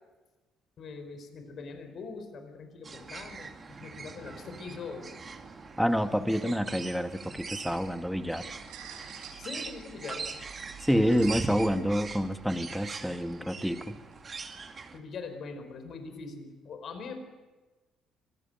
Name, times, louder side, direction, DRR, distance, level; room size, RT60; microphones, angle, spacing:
voice 1, 0.8-5.1 9.4-10.3 14.9-17.2, left 4 dB, 60° left, 7 dB, 4.6 m, -42 dB
sound 1, 2.8-15.0, right 4 dB, 40° right, 2.4 m, -42 dB
voice 2, 5.8-8.5 10.8-14.0, equal, ahead, 8 dB, 1.9 m, -28 dB
sound 2, 7.1-14.2, right 8 dB, 85° right, 5.7 m, -51 dB
25.5 x 16.5 x 9.3 m, 1.2 s
supercardioid pair, 65°, 0 cm